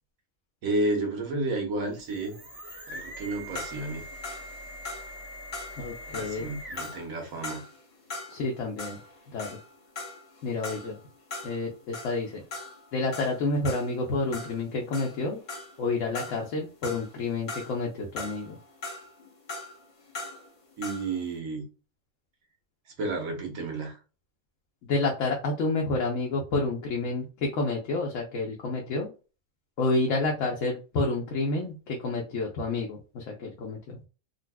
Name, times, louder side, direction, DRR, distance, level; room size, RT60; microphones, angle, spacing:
voice 1, 0.6-2.3 2.9-4.0 6.1-7.6 20.8-21.6 23.0-24.0, right 2 dB, 75° right, 2 dB, 1.4 m, -31 dB
sound 1, 1.8-7.1, equal, 25° right, 1.3 m, -43 dB
sound 2, 3.6-8.5 8.8-15.9 16.2-17.8 18.2-21.2, left 3 dB, 90° left, 1.7 m, -40 dB
voice 2, 5.8-6.5 8.3-9.0 9.3-9.6 10.4-11.0 11.4-12.4 12.9-15.4 15.8-18.6 24.9-29.1 29.8-34.0, left 3 dB, 70° left, -1 dB, 1.0 m, -29 dB
3.9 x 2.4 x 2.2 m, 0.34 s
omnidirectional pair, 1.5 m